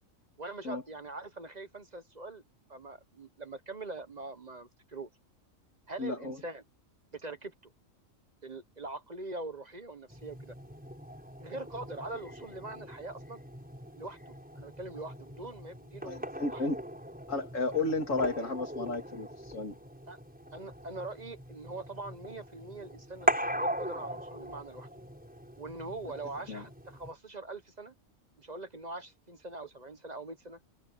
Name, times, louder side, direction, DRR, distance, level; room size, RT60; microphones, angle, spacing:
voice 1, 0.4-2.4 2.7-5.1 5.9-6.6 7.1-7.7 8.4-10.5 11.4-13.4 14.0-16.6 20.1-20.2 20.5-24.9 25.6-27.9 28.4-30.6, right 2 dB, 35° right, 1.2 m, -43 dB
voice 2, 6.0-6.4 16.0-16.8 17.3-19.7 26.5-26.6, left 3 dB, 70° left, 3.0 m, -33 dB
sound 1, 10.1-27.1, equal, 5° right, 5.6 m, -40 dB
omnidirectional pair, 1.4 m